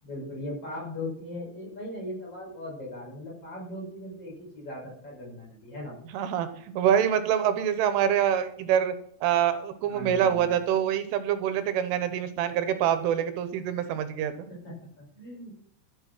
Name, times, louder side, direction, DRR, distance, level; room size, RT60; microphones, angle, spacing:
voice 1, 0.0-5.9 9.9-10.5 14.5-15.5, left 1 dB, 30° left, -3 dB, 6.4 m, -39 dB
voice 2, 6.1-6.5 6.8-8.9 9.2-14.5, right 9 dB, 80° right, 10 dB, 3.5 m, -25 dB
13.0 x 8.7 x 5.9 m, 0.66 s
omnidirectional pair, 5.6 m